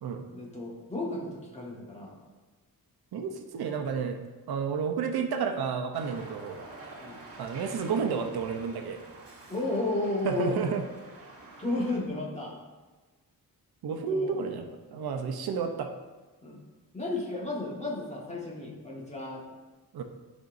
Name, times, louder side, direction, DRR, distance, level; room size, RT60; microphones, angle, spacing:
voice 1, 0.3-2.2 7.0-7.2 9.5-10.6 11.6-12.6 13.9-14.4 16.4-16.6 16.9-19.4, left 2 dB, 20° left, -3 dB, 1.5 m, -33 dB
voice 2, 3.1-4.2 4.5-6.6 7.4-9.0 10.2-10.8 13.8-15.9 19.9-20.0, right 6 dB, 85° right, 5 dB, 0.8 m, -31 dB
sound 1, 5.9-12.0, right 2 dB, 40° right, 1.5 m, -48 dB
12.0 x 5.3 x 2.6 m, 1.3 s
wide cardioid pair, 150°, 36 cm